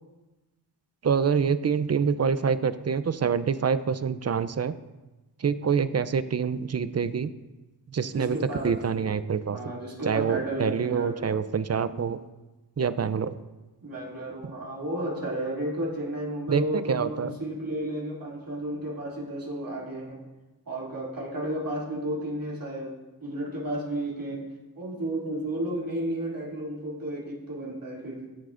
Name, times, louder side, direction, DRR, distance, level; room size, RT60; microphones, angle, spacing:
voice 1, 1.0-4.7 5.4-7.3 7.9-8.4 8.6-9.6 10.0-12.2 12.8-13.4 16.5-17.4, right 6 dB, 40° right, 14 dB, 0.5 m, -26 dB
voice 2, 8.1-9.1 9.5-11.3 11.9-12.0 13.8-20.3 20.7-24.5 24.8-28.3, right 1 dB, 60° right, -5 dB, 2.6 m, -33 dB
15.0 x 7.5 x 2.5 m, 1.1 s
wide cardioid pair, 80°, 38 cm